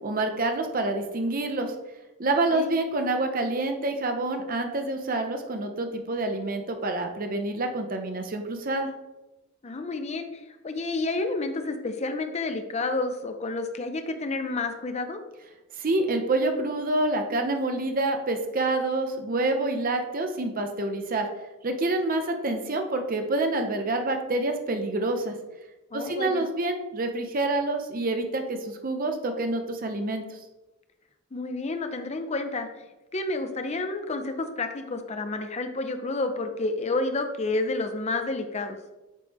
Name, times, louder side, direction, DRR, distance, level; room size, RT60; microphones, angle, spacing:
voice 1, 0.0-1.7 2.2-8.9 15.8-21.3 21.6-25.3 25.9-30.2, right 2 dB, 45° right, 5 dB, 0.7 m, -27 dB
voice 2, 9.6-15.2 25.9-26.4 31.3-32.7 33.1-38.8, left 2 dB, 30° left, 7 dB, 0.5 m, -30 dB
8.3 x 3.3 x 3.5 m, 1.0 s
head